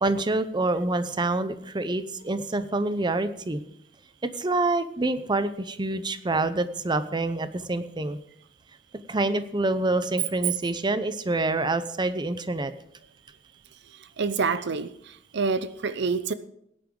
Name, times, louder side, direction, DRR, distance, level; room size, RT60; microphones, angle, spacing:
voice 1, 0.0-3.6 4.2-8.2 9.1-12.7, right 2 dB, 25° right, 0.7 m, -26 dB
voice 2, 14.2-16.3, right 4 dB, 60° right, 0.6 m, -27 dB
18.5 x 10.5 x 3.8 m
head